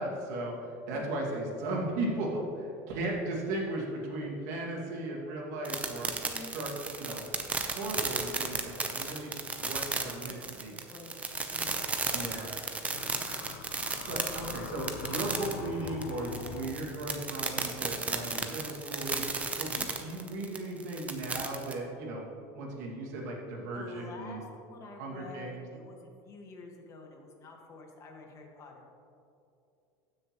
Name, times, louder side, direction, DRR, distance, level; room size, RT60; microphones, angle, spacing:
voice 1, 0.0-6.1 6.5-7.2 7.6-10.7 12.1-12.5 13.8-22.2 22.5-24.4 25.0-25.6, right 2 dB, 80° right, -2 dB, 2.2 m, -36 dB
sound 1, 5.6-21.7, right 4 dB, 15° right, 0.7 m, -34 dB
voice 2, 10.7-11.8 12.1-13.0 19.7-19.9 23.7-28.9, left 3 dB, 35° left, 1 dB, 1.6 m, -48 dB
sound 2, 12.9-17.2, left 7 dB, 80° left, 0.6 m, -43 dB
15.0 x 6.5 x 3.1 m, 2.6 s
supercardioid pair, 125°, 9 cm